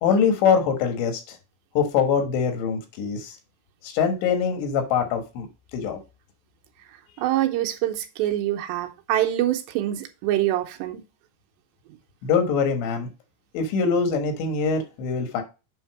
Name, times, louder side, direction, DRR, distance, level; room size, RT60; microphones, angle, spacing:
voice 1, 0.0-1.4 1.8-3.4 3.8-5.5 5.7-6.0 12.2-13.1 13.5-15.4, left 6 dB, 85° left, 3.6 m, -23 dB
voice 2, 7.2-11.0, right 13 dB, 80° right, 3.0 m, -25 dB
8.3 x 3.6 x 4.7 m
omnidirectional pair, 5.0 m